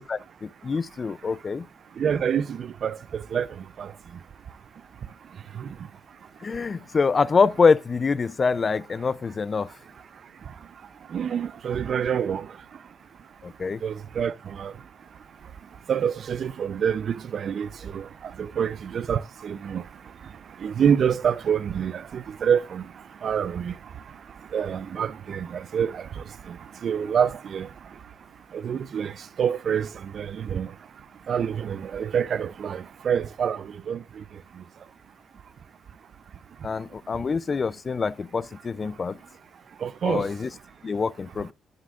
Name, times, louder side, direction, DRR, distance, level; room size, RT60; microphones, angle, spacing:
voice 1, 0.0-1.7 6.4-9.7 13.4-13.8 36.6-39.2 40.0-40.5 40.8-41.5, left 5 dB, 35° left, 0.5 m, -25 dB
voice 2, 2.0-3.5 3.8-3.9 5.6-5.7 11.1-12.5 13.8-14.7 15.9-18.1 18.4-19.8 20.6-22.8 23.2-23.7 24.5-26.1 26.5-26.6 26.8-27.7 28.5-29.1 29.4-29.9 30.1-30.7 31.3-34.0 39.8-40.3, right 8 dB, 55° right, 0.6 m, -26 dB
11.0 x 9.6 x 2.5 m
cardioid pair, 90°, 0 cm